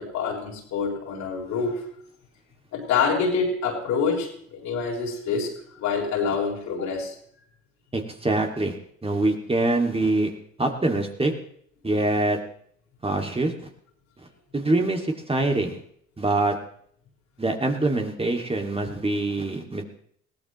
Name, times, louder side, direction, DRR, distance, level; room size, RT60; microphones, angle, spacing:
voice 1, 0.0-1.8 2.7-7.2, left 5 dB, 70° left, 0 dB, 4.3 m, -26 dB
voice 2, 7.9-8.7 9.0-10.3 10.6-11.3 11.8-12.4 13.0-13.5 14.5-15.8 16.2-16.6 17.4-19.8, right 2 dB, 20° right, 3 dB, 2.4 m, -24 dB
21.0 x 16.0 x 3.2 m, 0.63 s
supercardioid pair, 65°, 30 cm